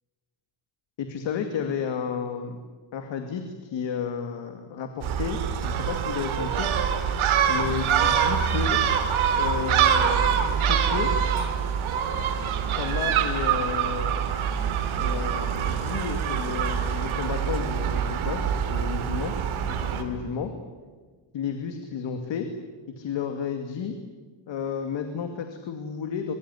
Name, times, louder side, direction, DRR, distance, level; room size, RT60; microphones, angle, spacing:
voice 1, 1.0-2.6 2.9-6.7 7.5-8.8 9.4-11.1 12.7-14.2 15.0-19.3 19.6-20.5 21.3-22.5 23.0-23.9 24.5-26.3, left 7 dB, 60° left, 6 dB, 2.5 m, -32 dB
Gull seagull, 5.0-20.0, right 8 dB, 75° right, 3.4 m, -25 dB
25.0 x 23.0 x 9.9 m, 1.4 s
cardioid pair, 165°, 49 cm